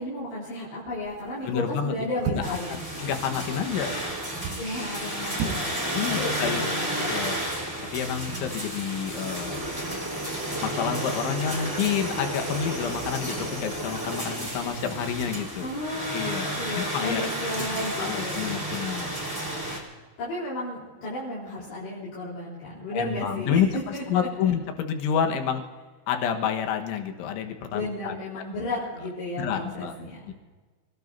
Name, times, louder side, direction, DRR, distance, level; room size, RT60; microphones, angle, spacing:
voice 1, 0.0-2.8 4.6-7.1 15.6-18.6 20.2-23.6 23.9-24.3 27.7-30.3, left 1 dB, 60° left, -8 dB, 6.1 m, -34 dB
sound 1, 1.1-1.4 2.2-2.7 4.2-4.7 5.3-5.7 6.0-6.1, right 6 dB, 85° right, 4.0 m, -31 dB
voice 2, 1.4-3.9 5.9-6.6 7.1-7.4 7.9-9.6 10.6-15.7 16.1-17.3 18.0-19.1 22.9-25.6 26.1-28.1 29.4-29.9 30.3-30.4, left 8 dB, 75° left, 5 dB, 3.5 m, -29 dB
sound 2, 2.4-19.8, right 1 dB, 5° right, 2.9 m, -32 dB
29.0 x 18.0 x 2.7 m, 1.4 s
omnidirectional pair, 5.9 m